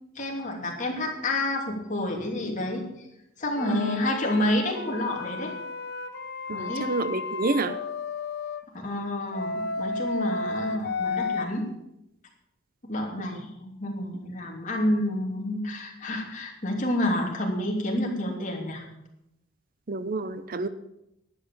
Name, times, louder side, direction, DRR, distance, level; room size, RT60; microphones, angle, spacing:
voice 1, 0.1-2.8 3.4-5.5 6.5-6.9 8.7-11.7 12.8-18.8, left 1 dB, 40° left, 0 dB, 2.9 m, -29 dB
sound 1, 3.6-8.6 9.3-11.4, left 4 dB, 55° left, 0.9 m, -33 dB
voice 2, 6.5-7.8 19.9-20.7, right 3 dB, 45° right, 12 dB, 0.7 m, -28 dB
12.0 x 9.1 x 6.9 m, 0.83 s
head